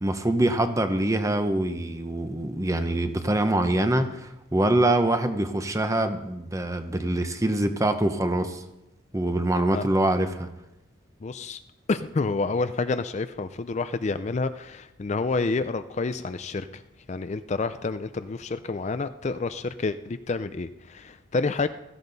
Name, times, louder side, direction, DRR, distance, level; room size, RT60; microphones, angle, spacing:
voice 1, 0.0-8.6 9.1-10.5, right 1 dB, 15° right, 8 dB, 0.8 m, -24 dB
voice 2, 11.2-11.6 11.9-16.8 17.1-21.7, left 3 dB, 35° left, 11 dB, 0.4 m, -29 dB
16.0 x 14.5 x 4.0 m, 0.92 s
head